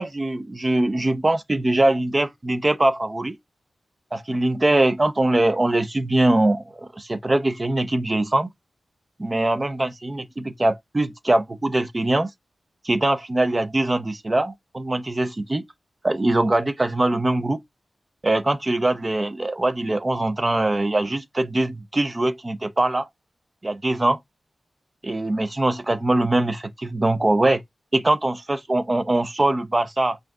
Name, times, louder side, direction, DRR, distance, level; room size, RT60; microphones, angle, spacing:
voice 1, 0.0-3.3 4.1-8.5 9.2-12.3 12.8-15.6 16.0-17.6 18.2-23.1 23.6-24.2 25.0-27.6 27.9-30.2, right 2 dB, 30° right, 0.6 m, -22 dB
5.7 x 2.6 x 2.3 m
cardioid pair, 60°, 0 cm